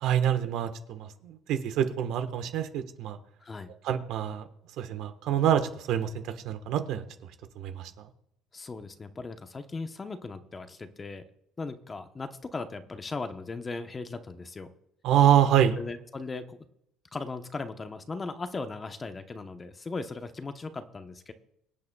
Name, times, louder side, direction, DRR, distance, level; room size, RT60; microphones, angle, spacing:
voice 1, 0.0-3.2 3.8-4.4 4.8-6.1 6.4-7.0 7.6-7.9 15.0-15.8, right 10 dB, 70° right, 8 dB, 1.2 m, -26 dB
voice 2, 3.4-3.7 8.5-11.2 11.6-14.7 15.7-16.7 17.1-21.3, left 3 dB, 20° left, 8 dB, 0.9 m, -38 dB
24.5 x 8.4 x 2.3 m, 0.77 s
cardioid pair, 120°, 0 cm